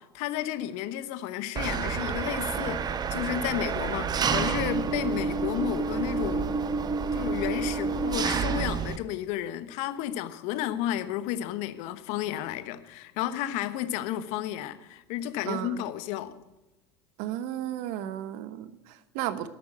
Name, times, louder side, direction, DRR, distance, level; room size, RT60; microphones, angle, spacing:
voice 1, 0.0-6.5 7.1-16.4, left 12 dB, 60° left, 1.1 m, -32 dB
Engine, 1.6-9.0, right 5 dB, 30° right, 0.9 m, -29 dB
voice 2, 15.5-15.8 17.2-19.5, right 12 dB, 60° right, 1.1 m, -34 dB
12.0 x 8.3 x 7.9 m
hypercardioid pair, 75°, 14 cm